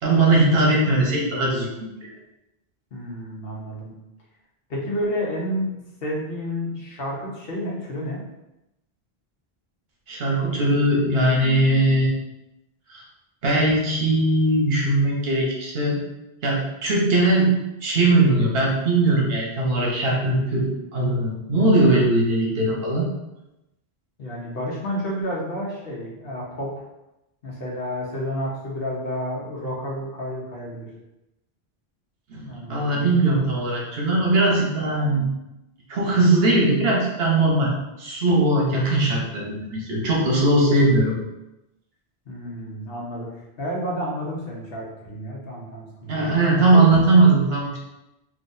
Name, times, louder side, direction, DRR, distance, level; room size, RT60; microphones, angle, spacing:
voice 1, 0.0-2.1 10.1-12.1 12.9-13.0 13.4-16.0 16.4-17.5 17.8-23.1 32.3-35.3 35.9-37.7 38.0-41.1 46.1-47.8, right 2 dB, 70° right, -2 dB, 1.1 m, -20 dB
voice 2, 2.9-3.9 4.7-8.2 24.2-26.8 27.4-30.9 32.4-33.5 42.3-43.3 43.6-46.3, equal, 65° left, -3 dB, 1.1 m, -30 dB
3.7 x 2.7 x 2.6 m, 0.93 s
omnidirectional pair, 1.0 m